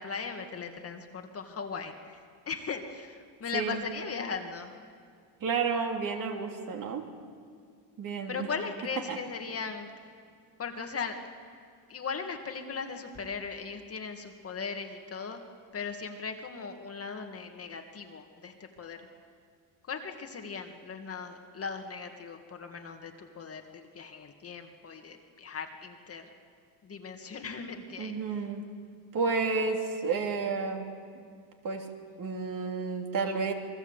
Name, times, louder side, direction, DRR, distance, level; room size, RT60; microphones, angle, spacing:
voice 1, 0.0-4.7 8.3-9.9 10.6-11.2 11.9-15.4 15.7-19.0 19.8-26.3 26.8-28.5, left 5 dB, 30° left, 4 dB, 2.1 m, -38 dB
voice 2, 3.5-3.8 5.4-7.1 8.0-8.5 9.1-9.2 28.0-28.7 29.1-30.9 31.6-31.9 32.2-33.5, right 4 dB, 45° right, 2 dB, 3.2 m, -31 dB
28.0 x 21.5 x 8.2 m, 2.2 s
cardioid pair, 140°, 46 cm